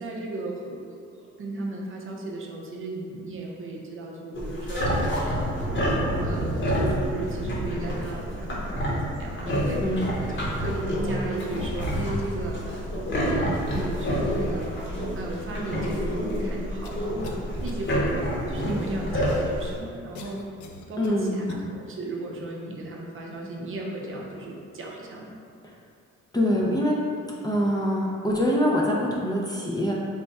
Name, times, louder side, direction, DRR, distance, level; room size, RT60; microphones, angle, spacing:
voice 1, 0.0-5.9 6.2-9.9 10.2-12.6 13.2-14.8 15.1-20.4 20.8-25.4, right 2 dB, 45° right, -2 dB, 0.6 m, -35 dB
sound 1, 4.3-19.7, equal, 40° left, 1.0 m, -28 dB
Thunder, 5.6-14.4, right 1 dB, 75° right, 0.8 m, -34 dB
sound 2, 11.5-12.2 13.7-14.9 15.7-15.8 16.8-17.4 17.7-17.8 20.1-21.6, left 4 dB, 75° left, 0.5 m, -42 dB
voice 2, 21.0-21.4 26.3-27.0 27.4-29.9, equal, 15° left, -4 dB, 0.5 m, -24 dB
3.4 x 2.2 x 4.1 m, 2.4 s
cardioid pair, 90°, 30 cm